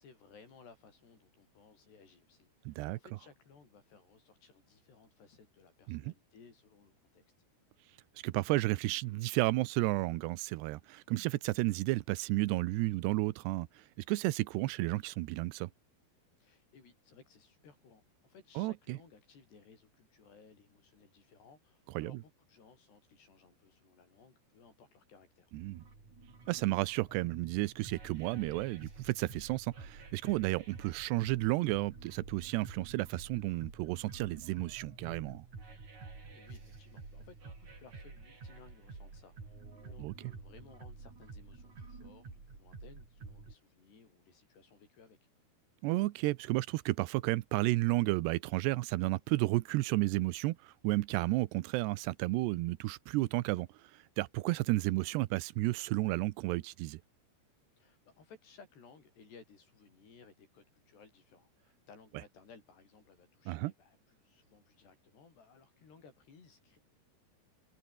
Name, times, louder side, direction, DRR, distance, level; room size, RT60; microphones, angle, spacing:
voice 1, 0.0-7.2 16.4-25.5 36.3-45.2 57.8-66.8, left 5 dB, 80° left, 8.4 m, -60 dB
voice 2, 2.7-3.0 5.9-6.1 8.2-13.7 14.1-15.7 18.6-19.0 22.0-22.2 25.5-25.8 26.5-35.5 40.0-40.1 45.8-53.7 54.2-57.0 63.5-63.7, right 19 dB, 85° right, 2.9 m, -32 dB
sound 1, 25.5-43.5, right 4 dB, 45° right, 7.5 m, -50 dB
omnidirectional pair, 4.8 m